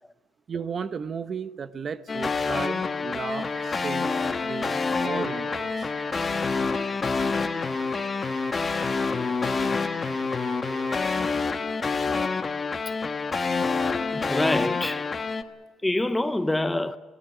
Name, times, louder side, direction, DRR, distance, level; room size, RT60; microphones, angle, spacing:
voice 1, 0.5-5.9, right 6 dB, 35° right, 0.9 m, -35 dB
sound 1, 2.1-15.4, left 4 dB, 25° left, 1.2 m, -27 dB
sound 2, 3.3-11.2, right 6 dB, 60° right, 2.7 m, -44 dB
voice 2, 14.1-15.1 15.8-17.0, left 1 dB, 10° left, 0.6 m, -26 dB
23.5 x 17.0 x 9.1 m
cardioid pair, 145°, 0 cm